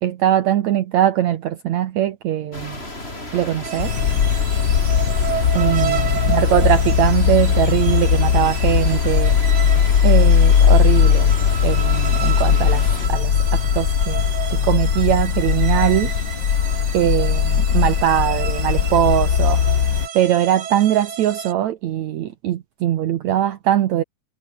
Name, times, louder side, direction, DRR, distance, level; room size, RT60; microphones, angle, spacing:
voice 1, 0.0-2.8 3.3-3.9 5.5-9.4 10.0-11.3 11.6-12.8 13.1-16.1 16.9-19.6 20.1-24.0, right 11 dB, 65° right, 2.3 m, -21 dB
sound 1, 2.5-13.1, left 1 dB, 15° left, 6.2 m, -34 dB
sound 2, 3.6-21.5, right 8 dB, 50° right, 2.0 m, -32 dB
sound 3, 3.8-20.1, left 8 dB, 45° left, 1.6 m, -18 dB
omnidirectional pair, 3.7 m